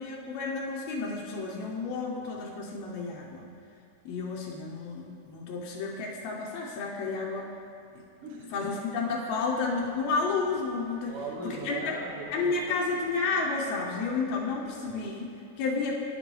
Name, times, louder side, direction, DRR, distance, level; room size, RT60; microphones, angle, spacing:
voice 1, 0.0-3.5 4.0-7.5 8.5-11.1 11.4-11.8 12.3-16.0, left 4 dB, 75° left, -3 dB, 1.7 m, -31 dB
voice 2, 8.2-8.7 11.1-12.8 14.9-15.1, right 2 dB, 70° right, -1 dB, 1.4 m, -39 dB
sound 1, 9.5-15.1, equal, 90° right, 3.1 m, -51 dB
9.5 x 8.2 x 3.0 m, 2.5 s
omnidirectional pair, 3.7 m